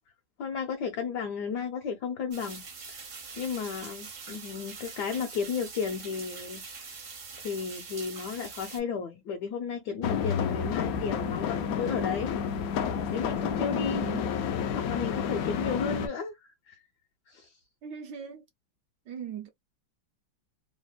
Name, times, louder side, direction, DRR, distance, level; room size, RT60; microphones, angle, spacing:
voice 1, 0.4-2.6 2.9-3.1 3.4-6.6 7.4-12.4 13.1-14.0 14.7-16.8 17.3-17.6, left 6 dB, 70° left, 1.1 m, -33 dB
sound 1, 2.3-8.8, right 4 dB, 50° right, 0.6 m, -43 dB
sound 2, 10.0-16.1, left 7 dB, 85° left, 0.8 m, -30 dB
voice 2, 13.8-14.2 17.8-18.4 19.1-19.5, right 8 dB, 75° right, 1.1 m, -39 dB
3.3 x 2.1 x 2.2 m
omnidirectional pair, 2.1 m